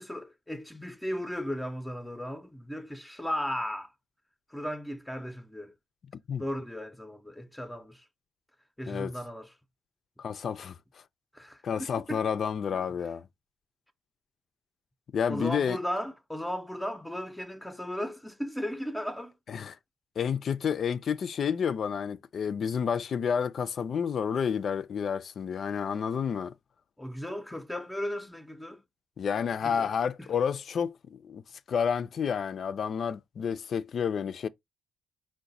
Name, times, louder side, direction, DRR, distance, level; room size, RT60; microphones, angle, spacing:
voice 1, 0.0-3.9 4.5-5.7 6.4-8.1 8.8-9.5 11.3-12.3 15.3-19.3 27.0-28.8 29.6-29.9 30.2-30.3, equal, 5° left, 0.6 m, -36 dB
voice 2, 10.2-10.8 11.6-13.3 15.1-15.8 19.5-19.8 20.2-26.5 29.2-31.4 31.7-34.5, left 7 dB, 55° left, 0.4 m, -30 dB
4.7 x 2.1 x 3.9 m
cardioid pair, 75°, 0 cm